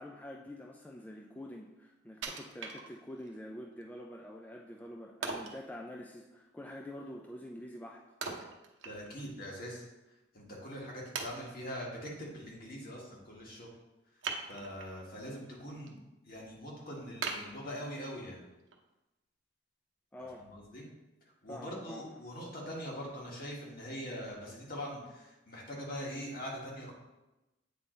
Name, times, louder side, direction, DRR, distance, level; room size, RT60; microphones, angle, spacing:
voice 1, 0.0-8.1 20.1-20.5 21.5-22.2, left 1 dB, 10° left, 0 dB, 0.3 m, -46 dB
Wood, 2.2-3.3 3.8-3.9 5.2-5.6 8.2-9.3 9.7-9.8 10.4-10.5 11.1-11.8 14.2-15.0 15.4-15.9 16.3-16.4 17.2-18.2 18.7-18.8, right 4 dB, 70° right, 0.7 m, -40 dB
voice 2, 8.8-9.8 10.3-13.7 14.5-15.9 16.3-18.4 20.4-20.8 21.4-26.9, equal, 50° left, -3 dB, 1.7 m, -42 dB
8.2 x 3.8 x 3.9 m, 1.0 s
head